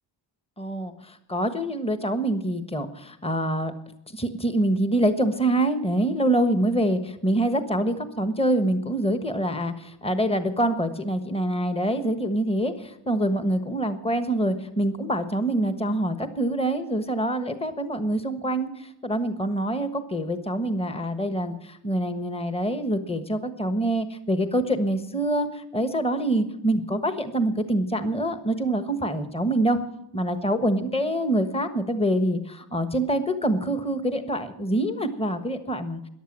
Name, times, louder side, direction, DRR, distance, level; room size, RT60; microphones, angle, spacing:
voice 1, 0.6-3.7 4.1-29.8 30.1-36.0, right 1 dB, 10° left, 9 dB, 1.3 m, -25 dB
14.0 x 11.0 x 7.5 m, 0.79 s
cardioid pair, 100°, 49 cm